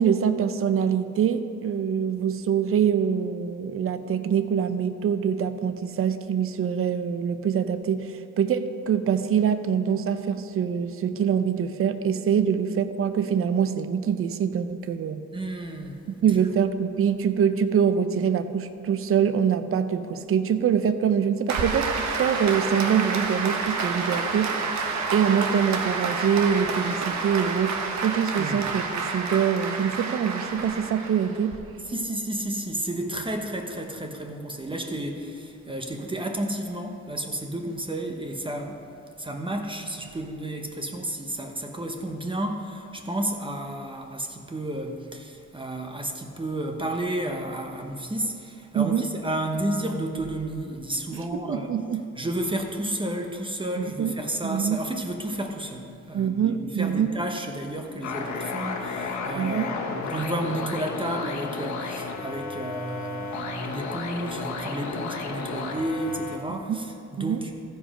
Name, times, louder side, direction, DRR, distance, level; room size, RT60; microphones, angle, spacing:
voice 1, 0.0-15.2 16.2-24.6 25.1-28.8 29.1-31.5 48.7-49.0 51.1-51.2 51.5-52.0 53.8-54.1 54.4-54.8 56.1-57.1 59.3-59.7 66.5-66.8 67.2-67.4, right 7 dB, 45° right, 10 dB, 0.6 m, -24 dB
voice 2, 15.3-16.0 28.4-28.6 31.8-38.9 39.2-51.7 52.2-67.5, right 1 dB, 15° right, 3 dB, 1.0 m, -32 dB
Applause, 21.5-31.6, right 4 dB, 65° right, 1.3 m, -29 dB
sound 1, 58.0-66.4, left 4 dB, 65° left, 1.4 m, -33 dB
15.0 x 5.3 x 5.0 m, 2.7 s
cardioid pair, 90°, 30 cm